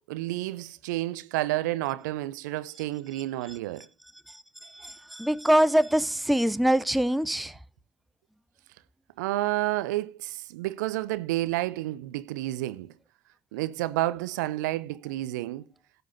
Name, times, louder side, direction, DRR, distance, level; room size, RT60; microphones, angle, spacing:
voice 1, 0.1-3.9 9.2-12.9 13.5-15.6, right 16 dB, 75° right, 0.6 m, -30 dB
voice 2, 4.7-7.5, right 1 dB, ahead, 0.5 m, -24 dB
17.5 x 7.7 x 2.7 m
figure-of-eight pair, 50°, 10 cm